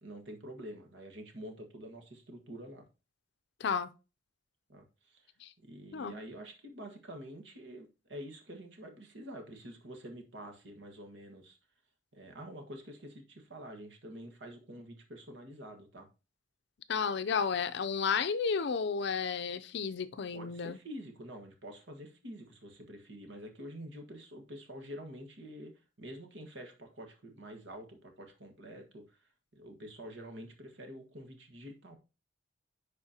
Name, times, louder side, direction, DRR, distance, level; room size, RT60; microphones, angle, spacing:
voice 1, 0.0-2.8 4.7-5.3 5.6-11.6 12.1-16.1 20.3-31.9, equal, 65° right, 1.5 m, -47 dB
voice 2, 16.9-20.8, left 6 dB, 65° left, 0.5 m, -32 dB
10.5 x 4.3 x 2.8 m
head